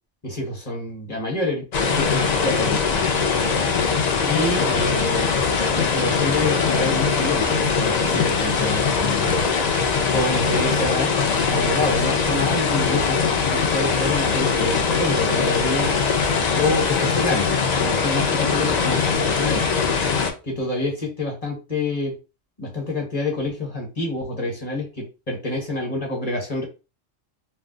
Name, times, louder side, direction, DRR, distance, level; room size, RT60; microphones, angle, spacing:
voice 1, 0.2-1.6 1.9-2.8 4.3-5.3 5.7-9.4 10.1-11.1 11.5-13.2 13.5-16.0 16.6-17.5 17.8-19.6 20.5-22.1 22.6-24.9 25.3-26.6, left 2 dB, 30° left, 0 dB, 0.9 m, -27 dB
sound 1, 1.7-20.3, left 5 dB, 90° left, 0.3 m, -21 dB
2.4 x 2.3 x 3.7 m, 0.30 s
omnidirectional pair, 1.4 m